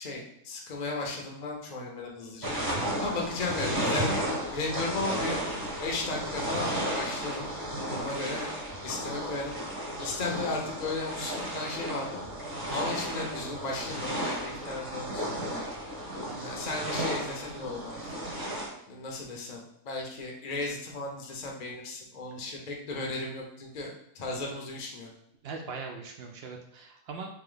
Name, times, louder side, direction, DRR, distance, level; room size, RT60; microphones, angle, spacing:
voice 1, 0.0-2.6 3.0-5.4 5.8-7.5 7.8-8.5 8.8-9.6 10.0-12.1 12.7-15.6 16.4-18.2 18.9-25.1, left 3 dB, 45° left, 0 dB, 0.5 m, -35 dB
sound 1, 2.4-18.7, equal, 25° right, 0.5 m, -34 dB
voice 2, 16.3-16.6 25.4-27.3, right 4 dB, 80° right, 2 dB, 0.5 m, -41 dB
3.1 x 2.9 x 3.8 m, 0.77 s
omnidirectional pair, 1.6 m